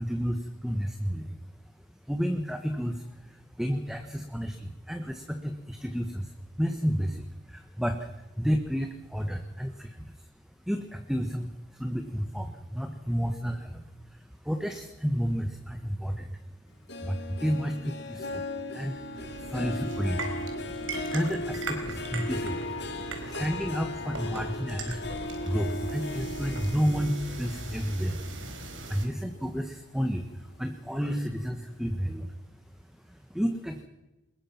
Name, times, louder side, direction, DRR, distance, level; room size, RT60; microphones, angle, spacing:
voice 1, 0.0-1.4 2.0-10.3 10.7-16.4 16.9-18.5 18.7-20.5 21.1-33.8, equal, ahead, 6 dB, 1.3 m, -32 dB
Harp, 16.9-29.6 30.0-30.4 30.9-31.0, left 2 dB, 55° left, 2.0 m, -37 dB
sound 1, 19.1-29.1, right 2 dB, 70° right, 4.5 m, -40 dB
23.0 x 21.5 x 5.9 m, 1.1 s
head